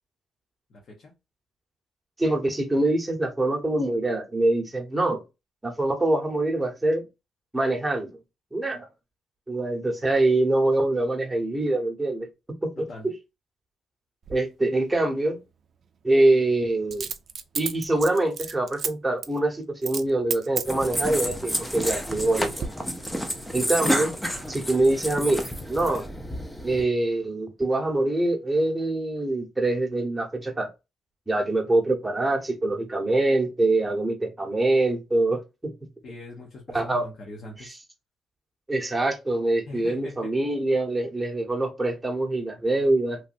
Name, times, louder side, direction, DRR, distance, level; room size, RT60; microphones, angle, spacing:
voice 1, 0.7-1.1 12.8-13.1 36.0-37.8 39.7-40.4, left 2 dB, 60° left, 1.1 m, -42 dB
voice 2, 2.2-5.2 5.6-7.0 7.5-8.1 8.5-8.9 9.5-12.3 12.6-13.1 14.3-15.4 16.0-17.1 17.5-22.7 23.5-24.2 24.5-26.0 26.6-30.7 31.3-35.7 36.7-37.0 38.7-43.2, right 2 dB, 10° right, 1.0 m, -24 dB
Coin (dropping), 14.2-14.4 16.9-18.9 19.2-19.4 19.8-20.1 20.3-21.1 21.7-22.3 22.6-22.7, right 6 dB, 55° right, 0.4 m, -32 dB
sound 1, 20.6-26.8, equal, 5° left, 0.6 m, -30 dB
3.0 x 2.5 x 2.5 m
cardioid pair, 90°, 0 cm